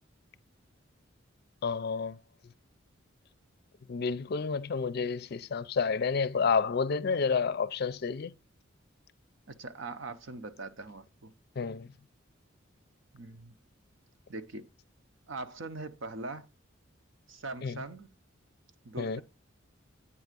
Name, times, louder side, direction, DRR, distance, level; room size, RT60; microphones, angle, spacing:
voice 1, 1.6-2.2 3.9-8.3 11.6-11.9 17.6-17.8 19.0-19.2, left 5 dB, 55° left, 0.4 m, -30 dB
voice 2, 9.5-11.3 13.1-13.5 14.3-14.6 15.3-16.5 17.3-18.1 18.8-19.2, right 3 dB, 75° right, 0.9 m, -41 dB
8.6 x 3.5 x 6.7 m
head